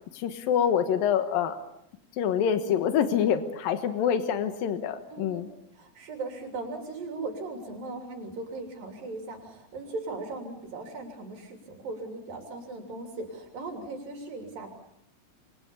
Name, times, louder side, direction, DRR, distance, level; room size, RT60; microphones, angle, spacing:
voice 1, 0.1-1.6 2.2-5.5, left 8 dB, 80° left, 8 dB, 3.1 m, -26 dB
voice 2, 5.1-5.4 5.7-14.7, right 3 dB, 75° right, 3 dB, 4.8 m, -38 dB
27.5 x 25.0 x 7.1 m, 0.77 s
omnidirectional pair, 4.1 m